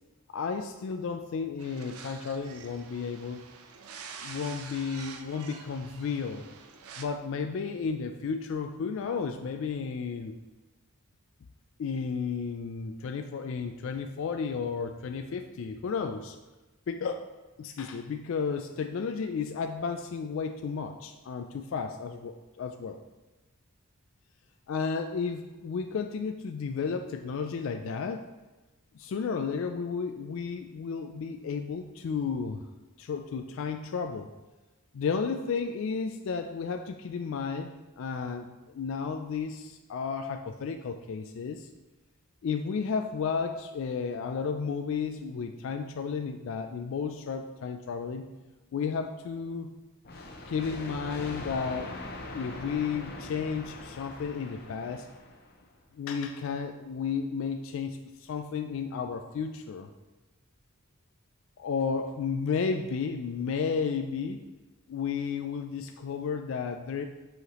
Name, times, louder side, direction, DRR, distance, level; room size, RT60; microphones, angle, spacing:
voice 1, 0.3-3.4 4.2-6.5 7.0-10.4 11.8-16.4 16.9-17.3 17.6-23.0 24.7-28.3 28.9-32.6 33.0-34.3 34.9-41.7 42.4-48.3 48.7-49.7 50.5-51.9 52.3-55.1 55.9-59.9 61.6-64.4 64.9-67.0, left 5 dB, 60° left, 6 dB, 0.3 m, -33 dB
sound 1, 1.6-7.1, right 5 dB, 85° right, 0.5 m, -47 dB
sound 2, 50.0-55.6, left 2 dB, 45° left, 0.7 m, -42 dB
5.7 x 5.6 x 3.0 m, 1.1 s
head